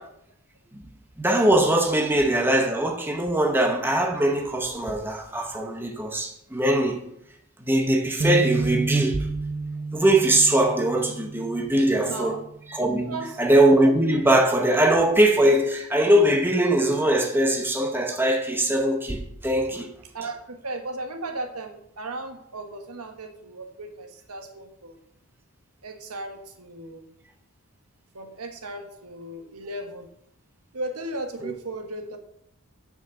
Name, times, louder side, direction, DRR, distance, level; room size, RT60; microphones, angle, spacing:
voice 1, 1.2-7.1 7.6-9.3 9.9-12.4 12.7-19.9 31.4-31.5, right 1 dB, 10° right, 0.8 m, -21 dB
sound 1, 8.2-12.5 12.9-13.2 14.0-14.4, right 3 dB, 45° right, 0.9 m, -30 dB
voice 2, 11.8-12.4 12.9-13.4 20.1-25.0 25.8-27.1 28.1-30.1 30.7-32.2, right 2 dB, 85° right, 1.4 m, -36 dB
7.2 x 6.2 x 6.4 m
head